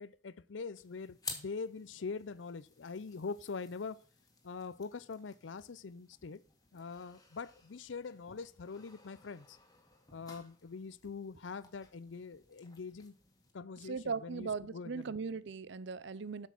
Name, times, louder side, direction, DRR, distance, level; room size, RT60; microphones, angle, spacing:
voice 1, 0.0-4.0 4.4-6.4 6.7-9.6 10.1-13.1 13.5-15.0, left 4 dB, 70° left, 0.5 m, -43 dB
sound 1, 0.7-13.5, left 4 dB, 20° left, 1.7 m, -53 dB
voice 2, 13.8-16.5, right 5 dB, 65° right, 0.6 m, -39 dB
8.2 x 6.3 x 6.0 m
head